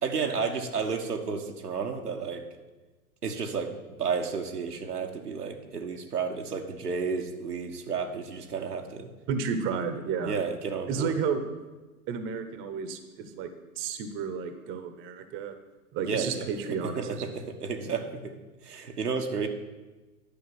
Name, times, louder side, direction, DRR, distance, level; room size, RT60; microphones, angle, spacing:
voice 1, 0.0-2.4 3.2-3.7 4.0-9.1 10.2-11.2 16.0-18.3 18.6-19.5, right 5 dB, 90° right, 3 dB, 1.4 m, -32 dB
voice 2, 9.3-10.4 10.9-11.4 12.1-13.5 13.8-15.5 15.9-17.3, right 6 dB, 25° right, 9 dB, 0.9 m, -32 dB
10.5 x 5.4 x 7.7 m, 1.2 s
hypercardioid pair, 110°, 45 cm